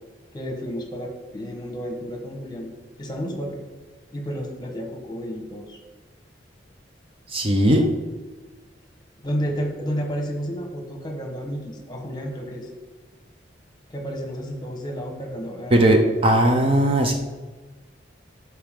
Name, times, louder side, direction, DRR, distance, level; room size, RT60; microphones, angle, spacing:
voice 1, 0.3-2.7 3.0-3.6 4.1-5.8 9.2-12.7 13.9-16.1, equal, 25° left, 2 dB, 1.2 m, -31 dB
voice 2, 7.3-7.9 15.7-17.1, right 1 dB, 30° right, 4 dB, 0.6 m, -18 dB
12.5 x 4.6 x 3.7 m, 1.3 s
head